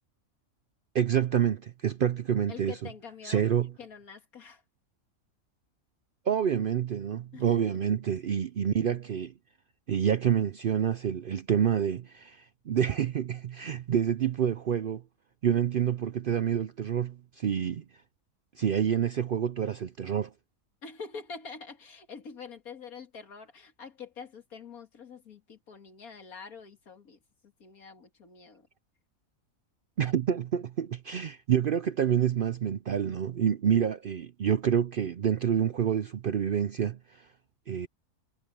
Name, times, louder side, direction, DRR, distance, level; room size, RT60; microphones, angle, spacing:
voice 1, 0.9-2.7 3.2-3.7 6.3-9.3 9.9-15.0 15.4-17.8 18.6-20.3 30.0-37.3 37.7-37.9, right 9 dB, 60° right, 0.5 m, -28 dB
voice 2, 2.5-3.5 3.8-4.6 7.3-7.6 20.8-28.7, left 5 dB, 90° left, 2.5 m, -45 dB
omnidirectional pair, 1.5 m